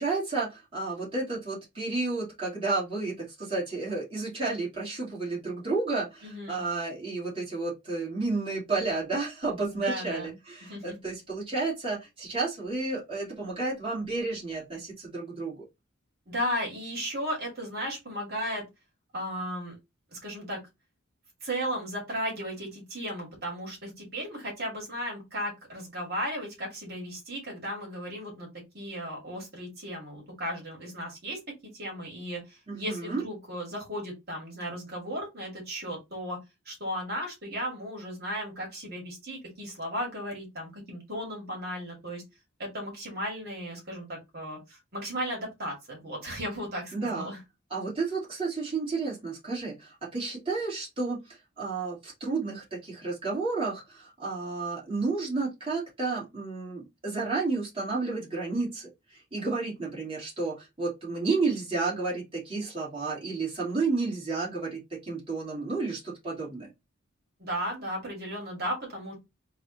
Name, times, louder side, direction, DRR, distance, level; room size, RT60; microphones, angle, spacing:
voice 1, 0.0-15.6 32.7-33.2 46.9-47.3 47.7-66.7, right 3 dB, 25° right, -6 dB, 2.2 m, -31 dB
voice 2, 6.2-6.6 9.7-10.3 10.7-11.0 16.3-18.6 19.1-19.8 20.1-20.6 21.4-28.5 28.7-31.4 31.7-36.4 36.7-42.2 42.6-47.4 67.4-69.1, equal, 50° right, -1 dB, 2.2 m, -35 dB
4.0 x 2.5 x 4.1 m, 0.21 s
head